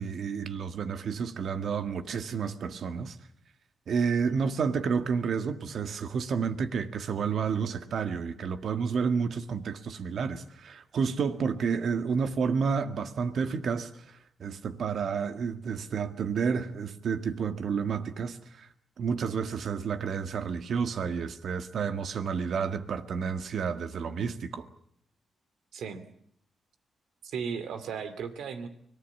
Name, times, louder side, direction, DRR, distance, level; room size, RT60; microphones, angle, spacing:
voice 1, 0.0-3.2 3.9-13.9 14.4-18.7 19.0-24.7, right 6 dB, 70° right, 1.8 m, -30 dB
voice 2, 25.7-26.0 27.2-28.7, right 6 dB, 85° right, 2.5 m, -36 dB
24.5 x 19.0 x 8.5 m
cardioid pair, 75°, 0 cm